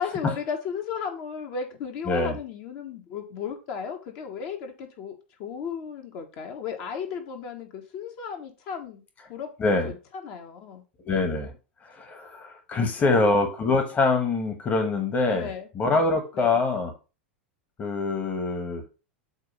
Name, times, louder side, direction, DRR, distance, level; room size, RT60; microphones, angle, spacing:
voice 1, 0.0-9.0 9.3-9.8 10.2-10.8 12.8-13.2 15.3-15.7 16.4-16.6, left 6 dB, 45° left, 3 dB, 1.4 m, -35 dB
voice 2, 2.0-2.4 9.6-9.9 11.0-11.5 11.8-15.5 15.7-16.9 17.8-18.8, left 3 dB, 25° left, 6 dB, 1.5 m, -24 dB
8.1 x 2.9 x 5.4 m, 0.31 s
figure-of-eight pair, 90°, 6 cm